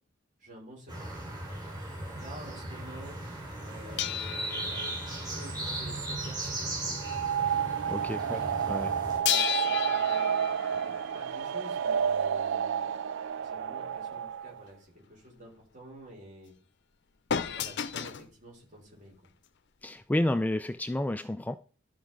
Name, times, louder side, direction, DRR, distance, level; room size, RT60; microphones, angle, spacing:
voice 1, 0.4-1.1 2.1-3.3 3.6-7.8 8.3-8.5 9.1-10.4 10.8-12.9 13.4-16.5 17.4-19.1, equal, 40° right, 5.3 m, -49 dB
sound 1, 0.9-9.2, right 2 dB, 20° right, 3.3 m, -37 dB
sound 2, 4.0-7.1 7.4-7.6 9.3-12.0 17.3-18.3 19.2-19.3, left 9 dB, 60° left, 0.7 m, -34 dB
sound 3, 6.9-14.6, right 8 dB, 65° right, 0.4 m, -30 dB
voice 2, 7.9-8.4 8.7-9.0 19.8-21.6, left 1 dB, 10° left, 0.3 m, -30 dB
12.5 x 4.8 x 4.6 m
head